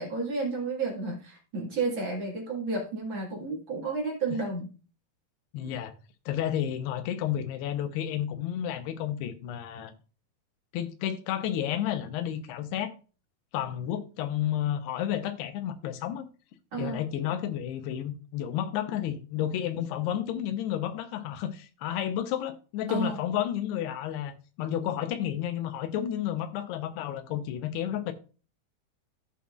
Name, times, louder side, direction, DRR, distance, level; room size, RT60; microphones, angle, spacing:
voice 1, 0.0-4.7 5.6-5.7 16.7-17.0 22.9-23.2, right 3 dB, 45° right, 1.8 m, -31 dB
voice 2, 5.5-5.9 6.3-9.9 10.7-12.9 13.5-16.3 16.8-28.1, left 10 dB, 85° left, 2.9 m, -31 dB
14.5 x 5.6 x 2.4 m
omnidirectional pair, 4.6 m